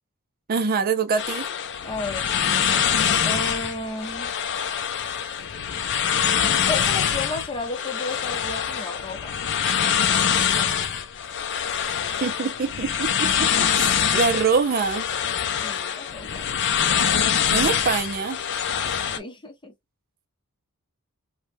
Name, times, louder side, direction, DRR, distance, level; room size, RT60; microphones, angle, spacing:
voice 1, 0.5-1.4 12.2-15.1 17.5-18.4, right 5 dB, 40° right, 0.4 m, -24 dB
sound 1, 1.2-19.2, left 8 dB, 55° left, 0.4 m, -24 dB
voice 2, 1.8-2.3 3.2-4.3 6.7-9.4 15.6-16.5 19.2-19.7, left 2 dB, 20° left, 0.8 m, -33 dB
3.2 x 2.2 x 2.6 m
head